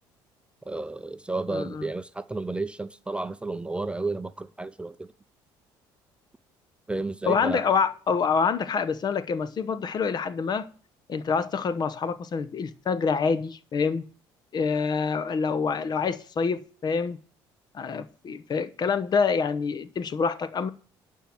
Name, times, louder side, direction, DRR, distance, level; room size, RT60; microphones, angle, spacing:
voice 1, 0.7-5.1 6.9-7.6, right 3 dB, 10° right, 0.5 m, -32 dB
voice 2, 1.5-1.9 7.2-10.7 11.1-14.0 14.5-17.2 17.7-20.7, left 5 dB, 45° left, 0.9 m, -26 dB
11.5 x 4.6 x 7.6 m
supercardioid pair, 85°, 10 cm